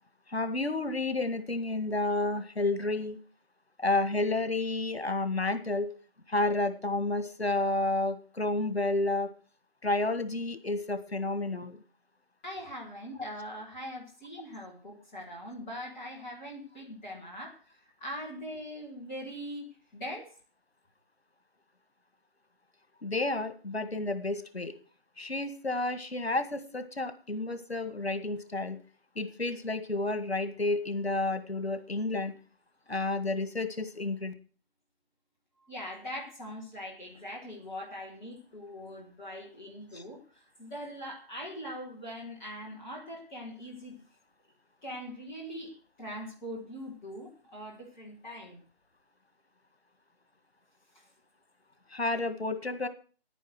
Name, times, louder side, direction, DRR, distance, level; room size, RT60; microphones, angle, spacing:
voice 1, 0.3-3.2 3.8-5.9 6.3-9.3 9.8-11.8 23.0-24.7 25.2-28.8 29.2-32.3 32.9-34.3 39.9-40.0 51.9-52.9, left 2 dB, 75° left, 10 dB, 1.9 m, -30 dB
voice 2, 12.4-20.3 35.6-44.0 44.8-48.6 50.9-51.0, equal, 5° left, -5 dB, 0.9 m, -42 dB
10.5 x 9.1 x 6.4 m, 0.39 s
figure-of-eight pair, 155°, 31 cm